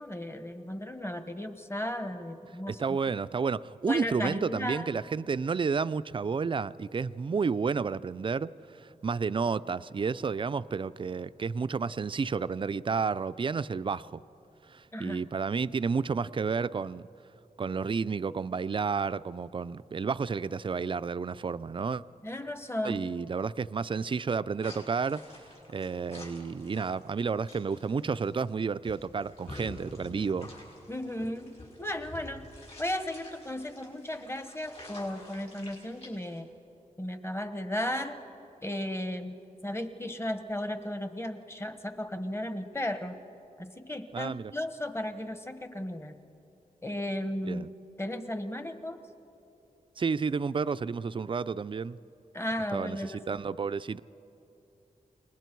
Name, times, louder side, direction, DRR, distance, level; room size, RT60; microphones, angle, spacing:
voice 1, 0.0-2.8 3.9-4.9 14.9-15.2 22.2-23.0 30.9-32.5 32.8-36.5 37.0-38.2 38.6-43.2 43.6-46.2 46.8-47.6 48.0-49.0 52.3-53.3, left 1 dB, 15° left, 1.2 m, -35 dB
voice 2, 2.7-14.2 14.7-17.1 17.6-22.0 22.8-30.5 44.1-44.5 47.5-47.7 50.0-52.0 52.7-54.0, right 5 dB, 35° right, 0.4 m, -31 dB
sound 1, 24.6-36.4, left 1 dB, 45° left, 6.1 m, -49 dB
28.5 x 20.5 x 4.6 m
wide cardioid pair, 85°, 15 cm